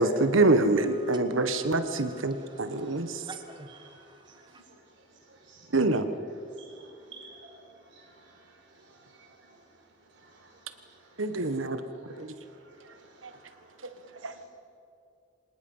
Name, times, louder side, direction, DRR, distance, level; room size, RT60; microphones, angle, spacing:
voice 1, 0.0-3.1 5.7-6.1 11.2-11.8 12.2-12.3 14.2-14.3, right 2 dB, 85° right, 9 dB, 1.3 m, -25 dB
voice 2, 0.8-4.6, right 2 dB, 25° right, 6 dB, 1.3 m, -51 dB
voice 3, 2.5-3.0 3.7-4.0 5.5-5.7 6.3-7.6 7.9-8.3 9.2-9.3 10.2-10.4 11.4-11.5 12.0-12.1 12.8-12.9 13.3-13.4 14.0-14.5, right 4 dB, 70° right, 1 dB, 4.6 m, -53 dB
26.0 x 19.0 x 5.6 m, 2.6 s
head